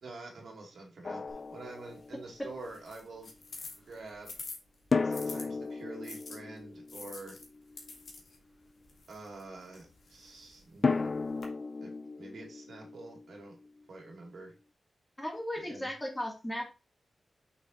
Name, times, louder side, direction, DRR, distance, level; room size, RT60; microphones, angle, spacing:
voice 1, 0.0-3.3 3.8-4.4 5.0-7.4 9.1-11.1 11.8-11.9 12.2-13.6 13.9-14.5 15.5-15.9, right 3 dB, 70° right, 0 dB, 2.2 m, -47 dB
Drum, 1.0-2.4 4.9-7.9 10.8-13.7, left 4 dB, 35° left, 0.3 m, -34 dB
sound 1, 1.3-5.4 6.0-11.4, left 3 dB, 70° left, 1.8 m, -49 dB
voice 2, 15.2-16.7, left 1 dB, 10° left, 1 dB, 1.5 m, -36 dB
6.5 x 5.8 x 3.0 m, 0.32 s
wide cardioid pair, 165°, 0 cm